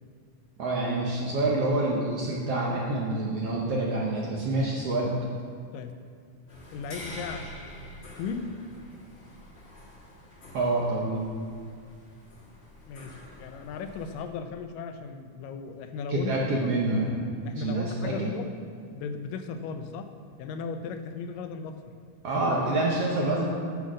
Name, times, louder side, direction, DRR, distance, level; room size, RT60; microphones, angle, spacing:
voice 1, 0.6-5.1 10.5-11.2 16.1-17.2 17.5-18.3 22.2-23.5, right 2 dB, 65° right, -3 dB, 1.6 m, -27 dB
sound 1, 6.5-14.2, left 1 dB, 70° left, 0.6 m, -46 dB
voice 2, 6.7-7.4 8.2-8.5 12.9-16.3 16.6-16.7 17.4-18.5 18.9-20.1 20.4-21.8, left 5 dB, 85° left, 7 dB, 2.3 m, -36 dB
8.4 x 7.1 x 6.2 m, 2.2 s
omnidirectional pair, 3.8 m